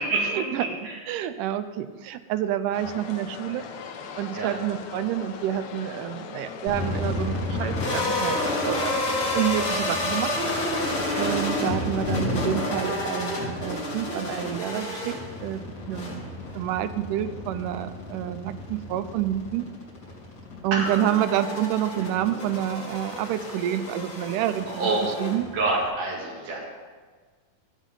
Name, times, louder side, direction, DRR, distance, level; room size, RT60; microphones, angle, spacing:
voice 1, 0.1-1.0 4.3-4.5 11.1-11.4 20.7-21.2 24.7-25.0 25.5-26.6, right 3 dB, 65° right, -3 dB, 3.6 m, -27 dB
voice 2, 1.1-3.7 4.2-9.0 9.3-10.3 11.2-15.2 15.4-16.2 16.6-19.7 20.6-24.9 25.2-25.4, right 11 dB, 80° right, 11 dB, 1.9 m, -28 dB
sound 1, 2.7-9.8, left 6 dB, 80° left, 1.6 m, -40 dB
sound 2, 6.7-25.9, left 2 dB, 35° left, 3.7 m, -30 dB
15.0 x 8.2 x 3.8 m, 1.5 s
omnidirectional pair, 4.1 m